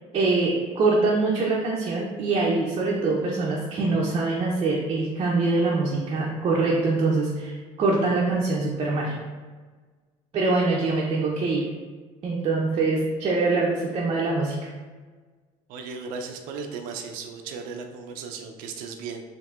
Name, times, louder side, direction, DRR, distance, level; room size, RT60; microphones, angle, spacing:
voice 1, 0.1-9.1 10.3-11.7 12.2-14.7, right 3 dB, 40° right, -4 dB, 0.6 m, -24 dB
voice 2, 15.7-19.2, right 5 dB, 85° right, 4 dB, 0.5 m, -36 dB
4.5 x 2.7 x 2.4 m, 1.4 s
cardioid pair, 120°, 14 cm